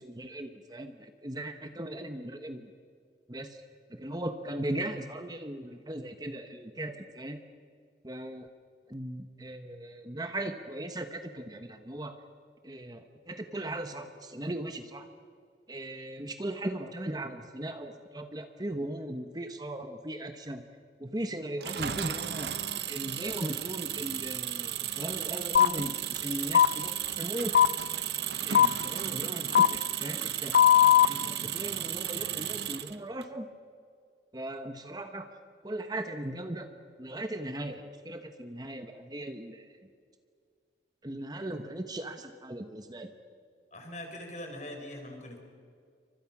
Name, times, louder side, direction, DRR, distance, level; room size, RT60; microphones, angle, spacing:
voice 1, 0.0-2.7 3.3-3.5 3.9-7.4 8.0-8.5 8.9-12.1 12.6-15.0 15.7-20.6 21.0-22.5 22.9-27.5 28.4-30.5 31.1-33.5 34.3-35.3 35.6-36.7 37.0-39.6 41.0-43.1, right 1 dB, 20° right, 7 dB, 1.2 m, -38 dB
Engine, 21.6-33.2, right 10 dB, 70° right, 1.0 m, -34 dB
sound 1, 25.5-25.7 26.5-26.7 27.5-27.7 28.5-28.7 29.5-29.7 30.5-31.1, left 9 dB, 65° left, 0.6 m, -18 dB
voice 2, 43.7-45.4, left 1 dB, 40° left, 4 dB, 4.7 m, -42 dB
29.5 x 24.5 x 6.1 m, 2.2 s
head